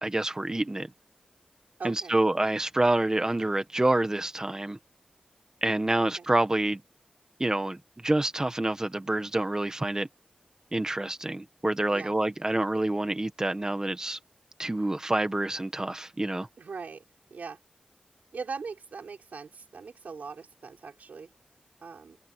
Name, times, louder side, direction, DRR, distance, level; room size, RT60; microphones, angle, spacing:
voice 1, 0.0-0.9 1.8-4.8 5.6-6.8 7.4-10.1 10.7-14.2 14.6-16.5, right 2 dB, 25° right, 1.5 m, -27 dB
voice 2, 1.8-2.1 6.2-6.3 11.9-12.2 16.6-17.0 17.3-17.6 18.3-21.3 21.8-22.2, right 5 dB, 90° right, 4.7 m, -40 dB
wide cardioid pair, 80°, 3 cm